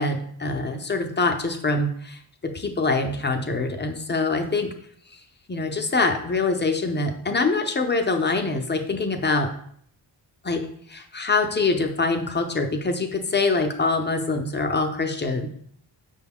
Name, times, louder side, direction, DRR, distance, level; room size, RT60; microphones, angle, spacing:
voice 1, 0.0-2.2 2.5-4.7 5.5-9.5 10.4-10.6 10.9-15.5, left 3 dB, 25° left, 5 dB, 0.5 m, -24 dB
5.3 x 2.3 x 3.5 m, 0.63 s
cardioid pair, 75°, 45 cm